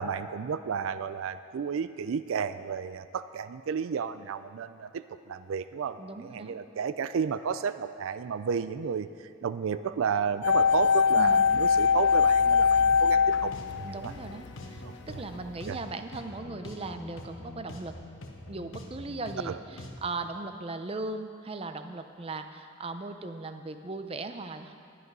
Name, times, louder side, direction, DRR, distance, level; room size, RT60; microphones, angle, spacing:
voice 1, 0.0-9.1 9.4-13.5 13.9-14.1 15.7-15.8 19.5-19.6, right 6 dB, 80° right, 13 dB, 0.4 m, -32 dB
voice 2, 6.0-6.6 11.2-11.5 13.8-17.9 18.5-24.7, right 3 dB, 30° right, 8 dB, 0.5 m, -38 dB
sound 1, 10.4-14.5 14.8-14.9, left 6 dB, 55° left, 0.3 m, -22 dB
sound 2, 13.3-20.0, left 1 dB, 75° left, 1.2 m, -45 dB
11.0 x 10.5 x 5.4 m, 2.3 s
head